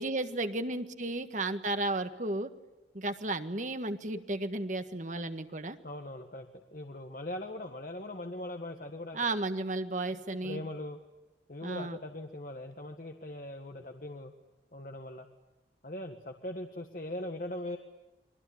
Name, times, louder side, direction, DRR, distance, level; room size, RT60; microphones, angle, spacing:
voice 1, 0.0-2.5 2.9-5.8 9.1-10.6 11.6-12.0, right 2 dB, 40° right, 8 dB, 1.7 m, -33 dB
voice 2, 5.8-9.2 10.1-11.0 11.5-14.3 14.7-15.3 15.8-17.8, left 1 dB, 50° left, 4 dB, 1.7 m, -40 dB
29.5 x 23.0 x 8.7 m, 1.1 s
head